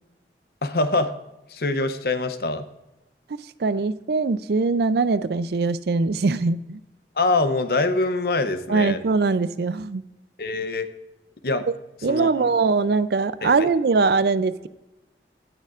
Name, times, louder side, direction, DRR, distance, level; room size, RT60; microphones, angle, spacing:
voice 1, 0.6-1.2 1.5-2.6 7.2-9.0 10.4-10.9 11.4-11.7 12.1-12.5 13.4-13.7, left 2 dB, 60° left, 10 dB, 0.7 m, -24 dB
voice 2, 3.6-6.8 8.7-10.0 12.0-14.7, right 4 dB, 65° right, 15 dB, 0.4 m, -22 dB
17.5 x 6.6 x 2.5 m, 0.97 s
head